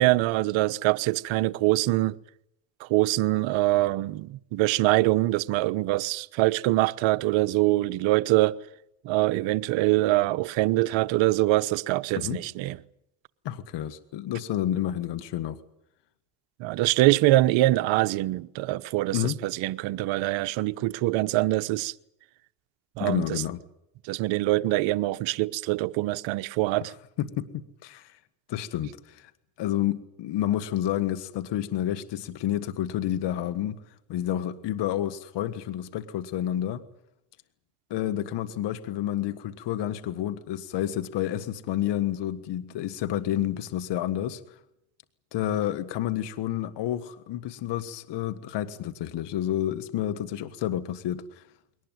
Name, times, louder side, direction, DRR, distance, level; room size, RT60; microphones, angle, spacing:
voice 1, 0.0-2.2 2.8-8.6 9.0-12.8 16.6-21.9 23.0-23.4 24.0-26.9, right 18 dB, 70° right, 1.0 m, -24 dB
voice 2, 13.5-15.6 19.1-19.4 23.0-23.6 27.2-28.2 28.5-29.3 29.6-33.8 34.1-36.8 37.9-44.4 45.3-51.4, left 12 dB, 60° left, 1.7 m, -29 dB
22.0 x 19.0 x 9.4 m
supercardioid pair, 80°, 47 cm